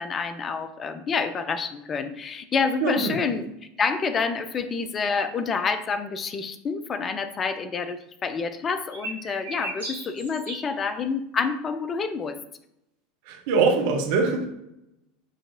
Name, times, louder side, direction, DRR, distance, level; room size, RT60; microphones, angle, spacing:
voice 1, 0.0-3.5 3.8-12.4, left 5 dB, 30° left, 11 dB, 0.3 m, -28 dB
voice 2, 2.8-3.1 13.3-14.5, right 4 dB, 55° right, 2 dB, 0.7 m, -23 dB
sound 1, 8.9-10.7, right 1 dB, 85° right, 1.6 m, -35 dB
6.3 x 2.8 x 2.6 m, 0.84 s
figure-of-eight pair, 80°, 0 cm